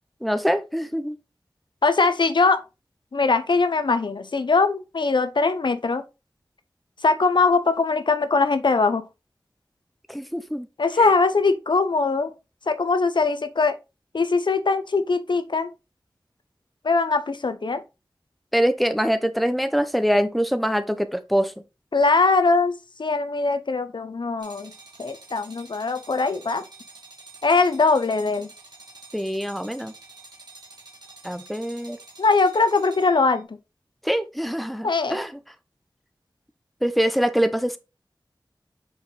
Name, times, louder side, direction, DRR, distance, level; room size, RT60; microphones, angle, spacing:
voice 1, 0.2-1.2 10.1-10.7 11.0-11.1 18.5-21.5 29.1-29.9 31.2-32.0 34.0-35.3 36.8-37.8, equal, ahead, 0.7 m, -24 dB
voice 2, 1.8-2.6 3.1-6.0 7.0-9.0 10.8-12.3 12.7-13.7 14.1-15.7 16.8-17.8 21.9-22.7 23.0-24.7 25.0-26.6 27.4-28.5 32.2-33.6 34.8-35.2, left 4 dB, 75° left, 0.7 m, -21 dB
sound 1, 24.4-33.4, right 3 dB, 60° right, 2.1 m, -48 dB
5.4 x 4.6 x 3.9 m
wide cardioid pair, 70°, 8 cm